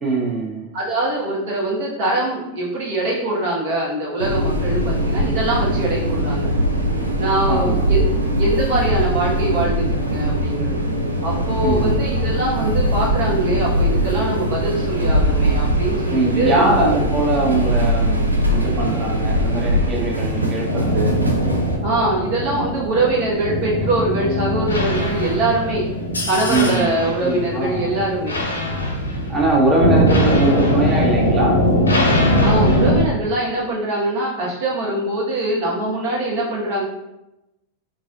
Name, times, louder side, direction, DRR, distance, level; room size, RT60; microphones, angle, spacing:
voice 1, 0.0-0.7 7.5-7.9 11.6-12.0 16.1-18.2 18.5-21.1 26.5-27.9 29.3-31.6, right 2 dB, 25° right, -2 dB, 1.2 m, -21 dB
voice 2, 0.7-6.5 7.2-8.1 8.4-10.8 11.2-17.0 21.2-21.3 21.8-25.8 26.2-28.4 32.4-36.8, right 2 dB, 50° right, -5 dB, 1.4 m, -23 dB
sound 1, 4.2-21.8, equal, 80° right, 0.5 m, -21 dB
sound 2, 20.7-33.0, equal, 75° left, 0.8 m, -21 dB
4.0 x 3.6 x 2.5 m, 0.93 s
figure-of-eight pair, 90°, 0 cm